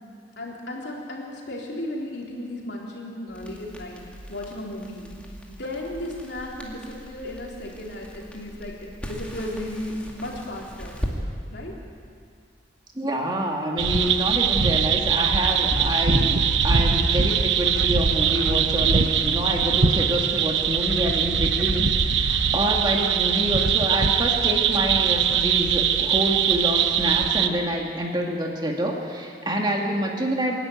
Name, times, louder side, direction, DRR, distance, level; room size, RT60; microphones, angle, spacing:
voice 1, 0.4-4.0 4.3-5.1 5.5-11.0 11.5-11.7, left 1 dB, 65° left, -2 dB, 3.8 m, -35 dB
Crackle, 3.3-11.2, equal, 5° left, 2.2 m, -39 dB
voice 2, 13.0-30.6, equal, 20° right, 0 dB, 1.9 m, -27 dB
sound 1, 13.8-27.5, right 7 dB, 80° right, 0.9 m, -22 dB
sound 2, 15.7-17.8, equal, 50° right, 2.2 m, -32 dB
26.0 x 11.0 x 9.3 m, 2.3 s
head